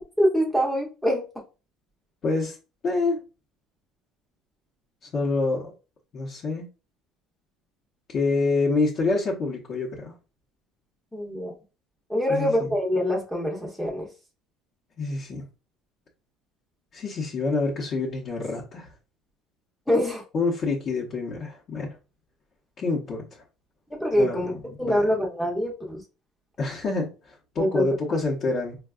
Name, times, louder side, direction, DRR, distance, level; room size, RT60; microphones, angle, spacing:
voice 1, 0.2-1.2 11.1-11.5 12.1-14.1 19.9-20.2 24.0-26.0 27.6-27.8, equal, 5° left, 0.7 m, -24 dB
voice 2, 2.2-2.6 2.8-3.2 5.0-5.7 6.1-6.7 8.1-10.1 12.3-12.7 15.0-15.4 16.9-18.9 20.3-21.9 22.8-23.4 24.2-25.0 26.6-28.8, left 3 dB, 35° left, 0.8 m, -27 dB
4.4 x 2.3 x 2.3 m
cardioid pair, 160°, 0 cm